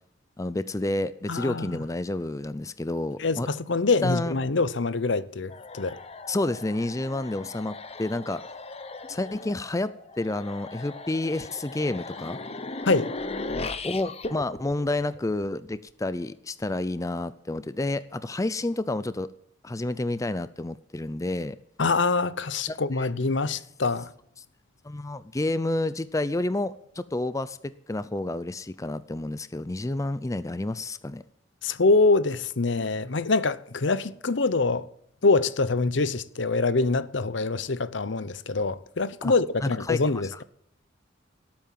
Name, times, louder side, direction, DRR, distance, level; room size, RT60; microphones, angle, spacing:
voice 1, 0.4-3.5 4.0-4.3 6.3-8.4 9.1-12.4 13.8-19.3 19.6-21.6 22.7-23.1 23.5-23.6 24.8-27.6 27.9-31.2 39.2-39.3 39.6-40.0, left 2 dB, 15° left, 0.5 m, -29 dB
voice 2, 1.3-1.8 3.2-6.0 12.8-13.1 21.8-24.1 31.6-34.9 35.2-40.4, left 3 dB, 65° left, 0.8 m, -25 dB
sound 1, 5.5-15.7, left 3 dB, 30° left, 1.0 m, -38 dB
18.0 x 8.8 x 7.4 m
head